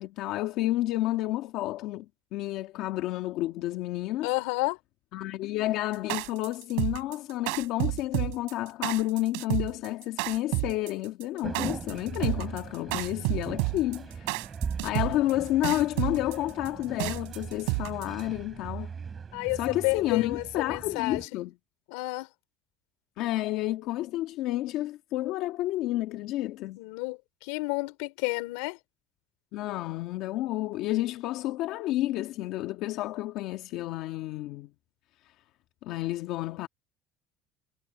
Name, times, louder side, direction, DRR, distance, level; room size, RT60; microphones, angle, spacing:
voice 1, 0.0-4.3 5.1-14.4 14.8-18.9 19.5-21.5 23.2-26.8 29.5-34.7 35.8-36.7, left 15 dB, 60° left, 1.5 m, -30 dB
voice 2, 4.2-4.8 19.3-21.3 21.9-22.3 26.8-28.8, left 26 dB, 90° left, 4.0 m, -30 dB
sound 1, 5.9-18.2, right 37 dB, 90° right, 4.0 m, -30 dB
sound 2, 11.4-21.3, right 6 dB, 25° right, 3.2 m, -39 dB
cardioid pair, 150°, 0 cm